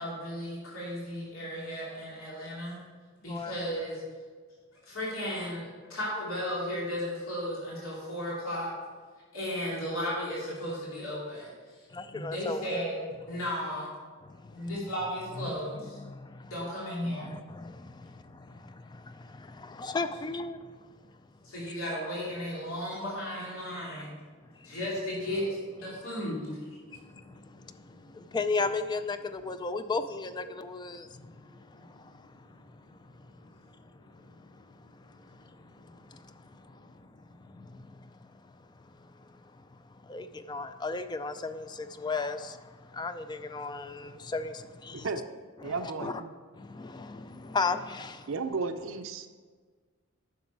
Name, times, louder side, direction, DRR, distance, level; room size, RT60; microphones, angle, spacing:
voice 1, 0.0-2.8 3.2-4.0 4.8-8.7 9.3-11.9 12.1-13.9 14.5-16.0 16.5-17.3 21.4-24.2 24.6-27.5 27.8-28.4 31.3-31.8 32.3-32.4 34.3-34.4, equal, 85° left, -6 dB, 2.8 m, -35 dB
voice 2, 11.9-12.8 15.4-16.5 17.1-20.6 28.1-31.1 37.6-37.7 40.1-42.6 42.9-45.1 45.6-46.2 46.6-48.3, left 3 dB, 20° left, 11 dB, 0.3 m, -35 dB
voice 3, 45.6-46.3 48.3-49.3, right 4 dB, 70° right, 8 dB, 0.5 m, -34 dB
9.5 x 6.3 x 4.6 m, 1.5 s
head